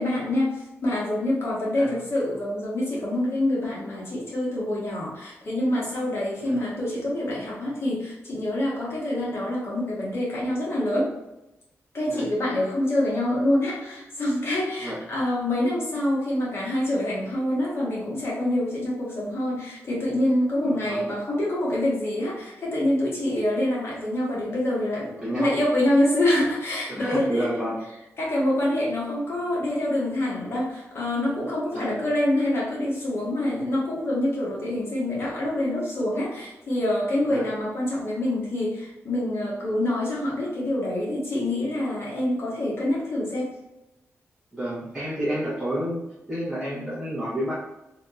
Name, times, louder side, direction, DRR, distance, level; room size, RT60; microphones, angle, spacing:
voice 1, 0.0-11.1 11.9-27.5 28.2-43.6 46.7-46.8, left 1 dB, 55° left, -5 dB, 1.4 m, -26 dB
voice 2, 20.6-21.1 25.2-25.5 26.9-27.8 31.7-32.0 37.2-37.5 44.5-47.6, equal, 10° right, -9 dB, 1.0 m, -30 dB
3.3 x 2.9 x 2.5 m, 0.94 s
wide cardioid pair, 100°, 5 cm